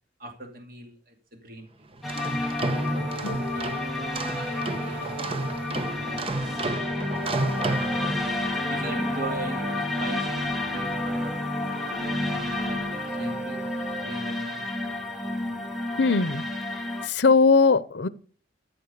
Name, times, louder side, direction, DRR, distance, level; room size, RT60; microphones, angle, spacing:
voice 1, 0.2-1.9 2.6-3.8 4.1-6.8 7.9-8.2 8.7-11.4 12.0-14.7, right 1 dB, 55° right, 2.5 m, -40 dB
sound 1, 1.9-8.6, right 2 dB, 30° right, 1.0 m, -32 dB
sound 2, 2.0-17.1, left 2 dB, ahead, 1.8 m, -30 dB
sound 3, 2.1-14.0, right 1 dB, 90° right, 1.9 m, -39 dB
voice 2, 16.0-16.4 17.0-18.1, left 4 dB, 85° left, 0.8 m, -20 dB
14.5 x 5.9 x 6.6 m
head